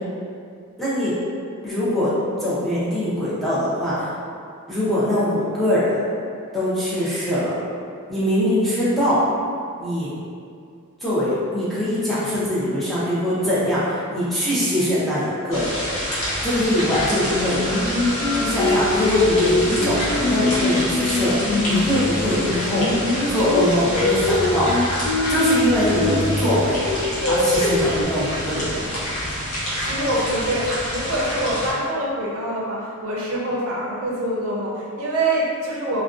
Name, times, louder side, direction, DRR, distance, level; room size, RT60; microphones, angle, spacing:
voice 1, 0.8-1.1 1.6-2.1 2.4-4.1 4.7-6.0 6.5-7.5 8.1-9.2 9.8-10.1 11.0-15.8 16.4-17.8 18.4-22.9 23.3-24.7 25.3-26.8 27.3-28.9, left 1 dB, ahead, -11 dB, 0.5 m, -22 dB
sound 1, 15.5-31.7, equal, 85° left, 0.9 m, -27 dB
Singing, 17.3-22.0 22.4-26.4 26.9-28.0, left 2 dB, 70° left, 0.4 m, -23 dB
voice 2, 29.8-36.0, right 1 dB, 65° right, -5 dB, 0.5 m, -25 dB
2.5 x 2.2 x 2.4 m, 2.3 s
head